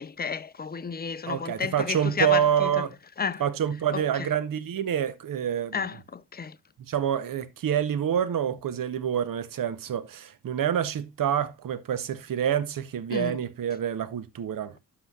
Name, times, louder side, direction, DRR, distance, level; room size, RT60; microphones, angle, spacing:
voice 1, 0.0-2.9 3.2-3.4 3.9-4.3 5.7-6.6 13.1-13.4, left 6 dB, 30° left, 0.4 m, -31 dB
voice 2, 1.3-2.9 3.4-5.8 6.9-14.7, right 9 dB, 75° right, 0.8 m, -27 dB
12.0 x 5.7 x 2.3 m
wide cardioid pair, 135°, 34 cm